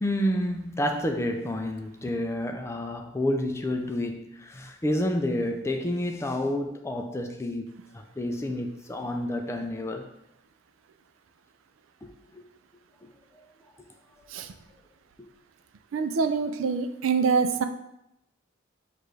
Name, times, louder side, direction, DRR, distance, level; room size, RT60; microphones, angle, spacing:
voice 1, 0.0-10.1 12.0-12.4 15.2-15.3, left 1 dB, 15° left, 4 dB, 0.3 m, -29 dB
voice 2, 15.9-17.6, right 5 dB, 85° right, 8 dB, 0.4 m, -25 dB
6.5 x 2.5 x 3.2 m, 0.84 s
head